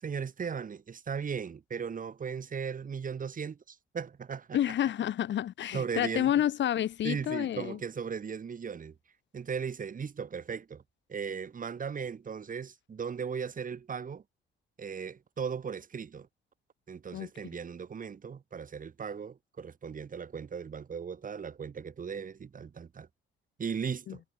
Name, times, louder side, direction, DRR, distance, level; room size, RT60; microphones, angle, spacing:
voice 1, 0.0-4.6 5.7-6.3 7.0-8.9 9.3-10.8 11.1-14.2 14.8-16.3 16.9-23.1 23.6-24.2, right 6 dB, 45° right, 3.1 m, -37 dB
voice 2, 4.5-7.8 17.1-17.3 24.1-24.2, left 11 dB, 65° left, 1.7 m, -29 dB
cardioid pair, 90°, 20 cm